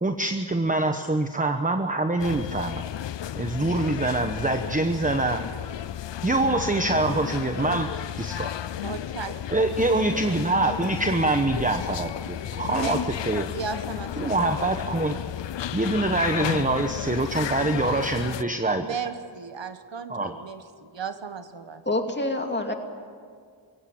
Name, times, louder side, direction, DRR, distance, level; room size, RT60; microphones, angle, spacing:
voice 1, 0.0-2.8 3.3-5.4 6.2-8.5 9.5-13.5 14.2-15.2 15.7-18.9 20.1-20.3, right 2 dB, 15° right, 6 dB, 1.0 m, -25 dB
sound 1, 2.2-18.4, left 11 dB, 70° left, 0.6 m, -33 dB
voice 2, 8.7-9.3 12.8-13.1 13.5-14.2 18.8-21.8, right 5 dB, 75° right, 9 dB, 1.4 m, -35 dB
voice 3, 21.9-22.7, left 2 dB, 25° left, 4 dB, 2.6 m, -26 dB
22.5 x 17.0 x 8.7 m, 2.1 s
wide cardioid pair, 75°, 45 cm